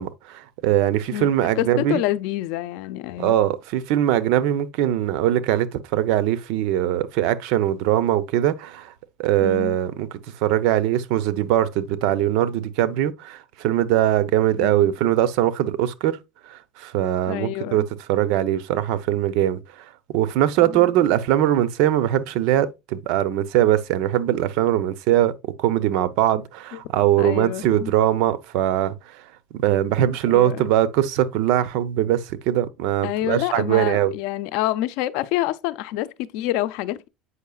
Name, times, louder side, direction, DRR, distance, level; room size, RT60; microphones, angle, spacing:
voice 1, 0.0-2.0 3.2-8.9 9.2-10.1 10.4-16.2 16.5-19.6 20.1-25.3 25.6-29.2 29.5-34.1, right 12 dB, 75° right, 0.7 m, -21 dB
voice 2, 1.6-3.4 9.4-9.8 14.5-14.9 17.3-17.9 20.6-20.9 26.7-26.8 27.2-27.9 30.3-30.6 33.0-37.1, left 15 dB, 75° left, 0.6 m, -27 dB
8.1 x 5.6 x 2.3 m
cardioid pair, 135°, 0 cm